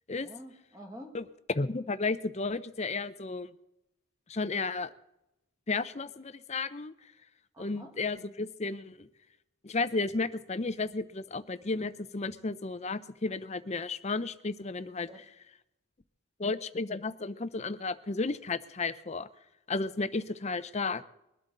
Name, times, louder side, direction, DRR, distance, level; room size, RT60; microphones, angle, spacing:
voice 1, 0.2-1.2 7.5-7.9 15.1-15.2 21.0-21.1, equal, 15° right, 2 dB, 2.0 m, -48 dB
voice 2, 1.6-3.5 4.3-4.9 5.7-6.9 7.6-9.1 9.6-15.1 16.4-19.3 19.7-21.0, left 3 dB, 30° left, 13 dB, 0.6 m, -33 dB
22.0 x 12.0 x 3.9 m, 0.86 s
head